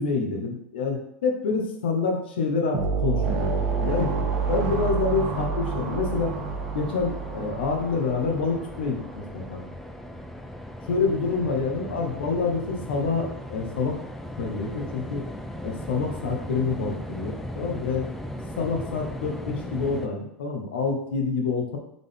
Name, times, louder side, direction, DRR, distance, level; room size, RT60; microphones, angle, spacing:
voice 1, 0.0-4.1 4.5-6.3 6.7-9.6 10.9-14.0 14.4-15.2 15.6-18.1 18.6-21.8, left 4 dB, 90° left, 2 dB, 0.9 m, -27 dB
sound 1, 2.7-9.2, right 5 dB, 60° right, 0.9 m, -29 dB
sound 2, 3.2-20.1, equal, 5° left, 0.4 m, -38 dB
4.0 x 3.7 x 3.5 m, 0.76 s
supercardioid pair, 105°, 5 cm